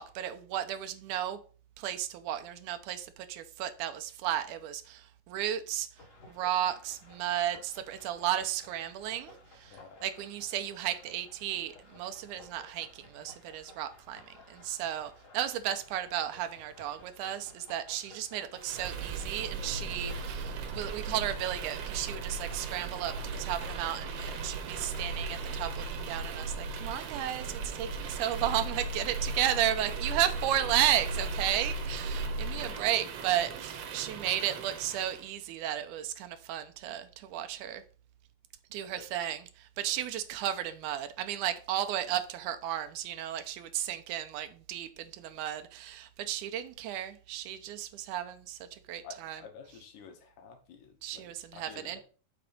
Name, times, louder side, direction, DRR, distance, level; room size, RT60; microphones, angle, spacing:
voice 1, 0.0-1.4 1.8-5.9 6.3-37.8 38.7-49.4 51.0-52.0, right 11 dB, 90° right, 2.1 m, -34 dB
sound 1, 5.9-25.6, left 3 dB, 40° left, 1.2 m, -56 dB
voice 2, 9.7-10.0 38.9-39.0 49.0-52.0, left 6 dB, 75° left, 2.4 m, -50 dB
sound 2, 18.6-35.3, right 3 dB, 65° right, 1.7 m, -37 dB
5.9 x 4.3 x 5.2 m
omnidirectional pair, 3.6 m